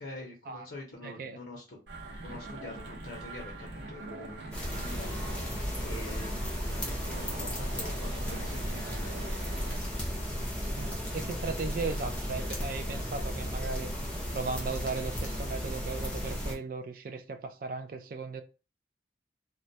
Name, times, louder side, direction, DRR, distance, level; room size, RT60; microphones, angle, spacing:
voice 1, 0.0-1.8 2.2-6.6 7.0-9.9, left 2 dB, 65° left, 0.6 m, -46 dB
voice 2, 1.0-1.4 10.8-13.9 14.3-18.4, right 4 dB, 50° right, 0.3 m, -37 dB
sound 1, 1.9-9.8, right 2 dB, 85° right, 0.6 m, -43 dB
sound 2, 4.5-16.5, equal, 5° left, 0.6 m, -34 dB
2.2 x 2.1 x 2.6 m
head